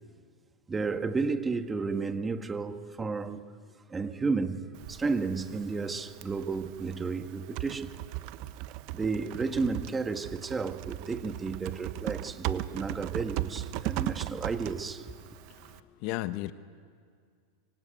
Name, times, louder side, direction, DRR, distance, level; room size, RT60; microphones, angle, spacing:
voice 1, 0.7-3.5 3.9-8.0 8.9-15.1, right 4 dB, 15° right, 1.7 m, -32 dB
Typing, 4.7-15.8, right 16 dB, 55° right, 1.1 m, -38 dB
voice 2, 15.3-16.5, left 17 dB, 55° left, 1.1 m, -36 dB
26.0 x 24.0 x 9.2 m
hypercardioid pair, 100°, 0 cm